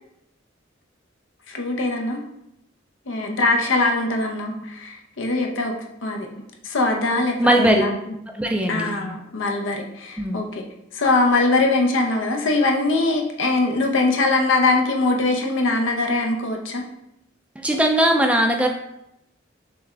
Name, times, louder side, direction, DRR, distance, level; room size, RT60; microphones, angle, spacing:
voice 1, 1.5-2.2 3.1-5.7 6.0-6.3 6.6-7.9 8.7-10.6 10.9-16.8, left 2 dB, 75° left, 2 dB, 0.8 m, -22 dB
voice 2, 7.4-7.8 8.3-8.9 10.2-10.4 17.6-18.7, right 1 dB, 5° right, 2 dB, 0.4 m, -19 dB
6.7 x 2.4 x 3.3 m, 0.82 s
head